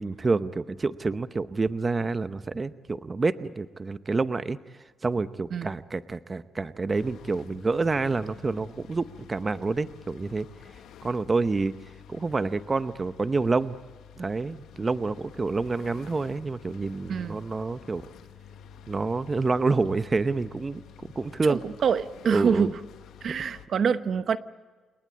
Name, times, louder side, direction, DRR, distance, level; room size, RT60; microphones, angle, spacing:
voice 1, 0.0-4.6 5.0-10.5 11.0-11.7 12.1-13.8 14.2-18.0 18.9-20.8 21.2-21.6 22.3-22.7, right 3 dB, 30° right, 12 dB, 0.8 m, -28 dB
sound 1, 6.9-23.7, left 8 dB, 80° left, 1.2 m, -50 dB
voice 2, 17.1-17.4 21.5-22.8 23.2-24.4, right 6 dB, 55° right, 12 dB, 0.9 m, -26 dB
29.0 x 19.0 x 8.7 m, 1.4 s
cardioid pair, 95°, 0 cm